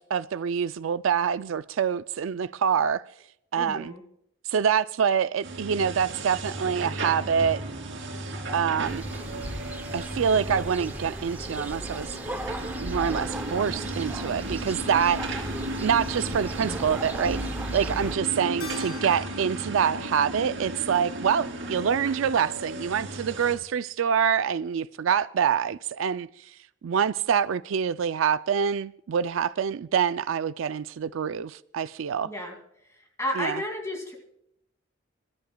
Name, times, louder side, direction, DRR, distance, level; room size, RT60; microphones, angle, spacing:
voice 1, 0.0-3.0 3.5-3.9 4.5-7.6 8.5-9.0 9.9-12.1 12.8-15.5 15.8-17.4 17.7-26.5 26.8-32.3 33.4-33.6, right 7 dB, 75° right, 0.4 m, -26 dB
voice 2, 3.5-4.0 32.2-32.6 32.9-34.1, left 1 dB, 15° left, 2.4 m, -32 dB
sound 1, 5.4-23.6, right 2 dB, 60° right, 3.2 m, -35 dB
sound 2, 8.8-18.2, right 1 dB, 10° right, 0.7 m, -36 dB
Keyboard (musical), 18.6-23.2, left 2 dB, 85° left, 2.8 m, -47 dB
26.5 x 13.5 x 2.3 m
head